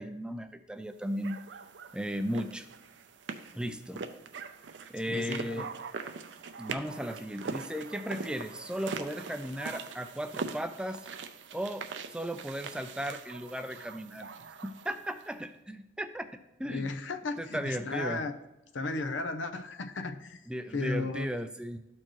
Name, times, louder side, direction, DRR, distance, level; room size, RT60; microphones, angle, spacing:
voice 1, 0.0-1.4 1.9-2.7 3.5-4.1 4.9-5.7 6.6-11.0 11.5-14.3 14.6-17.0 17.4-18.2 20.5-21.8, equal, 5° right, 8 dB, 0.3 m, -36 dB
sound 1, 1.2-15.3, right 5 dB, 75° right, 0.6 m, -42 dB
voice 2, 5.1-5.7 16.7-18.3 18.7-20.4 20.7-21.3, left 3 dB, 85° left, 8 dB, 0.7 m, -34 dB
13.0 x 4.4 x 3.1 m, 0.97 s
head